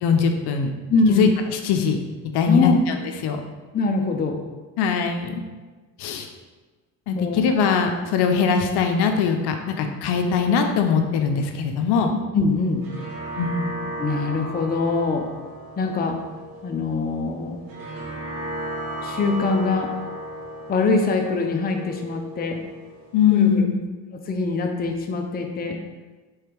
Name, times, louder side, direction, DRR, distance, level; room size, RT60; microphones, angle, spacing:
voice 1, 0.0-0.7 1.1-2.0 2.3-3.0 3.2-3.4 4.8-5.4 6.0-6.3 7.1-12.2 13.4-13.7 23.1-23.8, left 6 dB, 65° left, 5 dB, 0.7 m, -21 dB
voice 2, 0.9-1.3 2.5-2.8 3.7-4.4 7.1-7.4 12.3-12.9 14.0-15.3 15.8-16.2 16.6-17.6 19.0-19.9 20.7-22.6 23.3-23.7 24.3-25.8, left 3 dB, 20° left, 3 dB, 0.5 m, -23 dB
sound 1, 12.5-23.5, right 1 dB, 55° right, 1.3 m, -35 dB
3.5 x 3.3 x 4.5 m, 1.3 s
supercardioid pair, 85°, 43 cm